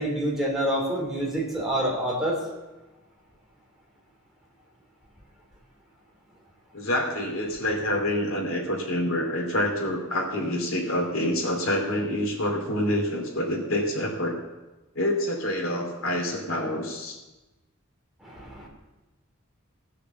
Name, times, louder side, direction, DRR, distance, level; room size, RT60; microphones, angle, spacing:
voice 1, 0.0-2.4 18.2-18.7, right 1 dB, ahead, -3 dB, 2.9 m, -27 dB
voice 2, 6.7-14.3 14.9-17.2, left 1 dB, 70° left, 1 dB, 2.8 m, -27 dB
17.0 x 6.9 x 7.1 m, 1.1 s
head